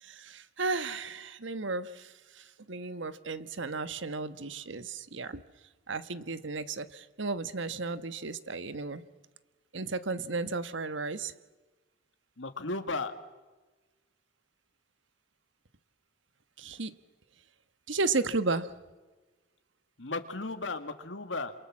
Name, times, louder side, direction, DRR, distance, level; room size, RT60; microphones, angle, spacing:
voice 1, 0.0-5.4 5.9-9.0 9.7-11.3 16.6-17.0 17.9-18.7, right 3 dB, 80° right, 12 dB, 1.3 m, -34 dB
voice 2, 12.4-13.1 20.0-21.5, left 3 dB, 80° left, 7 dB, 1.9 m, -35 dB
28.0 x 27.0 x 7.4 m, 1.2 s
head